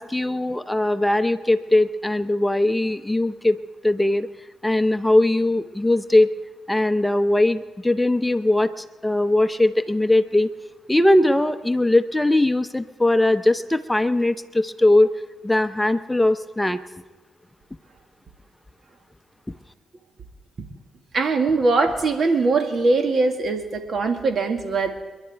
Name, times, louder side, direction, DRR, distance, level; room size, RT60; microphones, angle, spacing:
voice 1, 0.0-3.6 3.8-4.3 4.6-6.3 6.7-10.5 10.9-15.1 15.4-16.8, left 1 dB, 15° left, 11 dB, 0.8 m, -20 dB
voice 2, 21.1-25.0, right 3 dB, 60° right, 6 dB, 1.8 m, -21 dB
30.0 x 11.5 x 3.5 m, 1.3 s
supercardioid pair, 45°, 0 cm